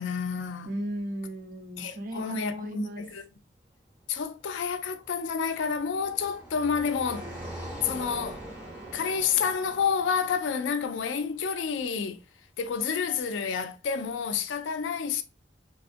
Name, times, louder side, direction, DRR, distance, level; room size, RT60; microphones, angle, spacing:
voice 1, 0.0-0.7 1.8-3.2 4.1-7.3 7.8-8.4 8.9-12.2 12.6-15.2, left 6 dB, 80° left, 0.4 m, -29 dB
voice 2, 0.7-3.0, right 1 dB, 50° right, 0.6 m, -36 dB
Car passing by, 4.4-11.7, right 1 dB, 5° right, 0.8 m, -44 dB
Wind instrument woodwind instrument, 7.0-10.5, right 3 dB, 75° right, 0.9 m, -49 dB
3.4 x 2.4 x 2.5 m
head